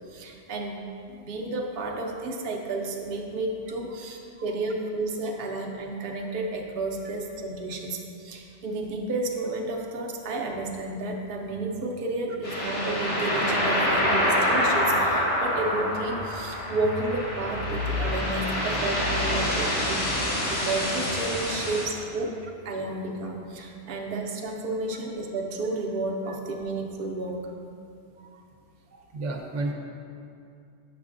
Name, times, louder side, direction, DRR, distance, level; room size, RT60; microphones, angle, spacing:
voice 1, 0.1-0.8 1.2-27.4, right 2 dB, 60° right, 0 dB, 0.7 m, -31 dB
sound 1, 12.4-21.8, left 1 dB, 75° left, 1.6 m, -26 dB
voice 2, 28.9-29.7, right 2 dB, 85° right, 1 dB, 1.0 m, -32 dB
7.2 x 5.9 x 2.5 m, 2.5 s
omnidirectional pair, 1.2 m